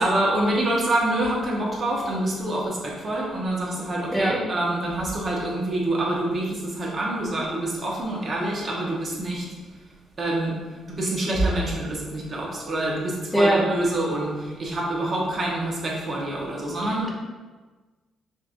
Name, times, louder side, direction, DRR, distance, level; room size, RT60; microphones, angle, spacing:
voice 1, 0.0-9.5 10.2-10.6 10.9-17.1, right 1 dB, 40° right, -3 dB, 1.0 m, -26 dB
voice 2, 13.3-13.7, right 1 dB, 10° left, -2 dB, 0.5 m, -19 dB
5.1 x 2.5 x 2.5 m, 1.3 s
cardioid pair, 90°, 0 cm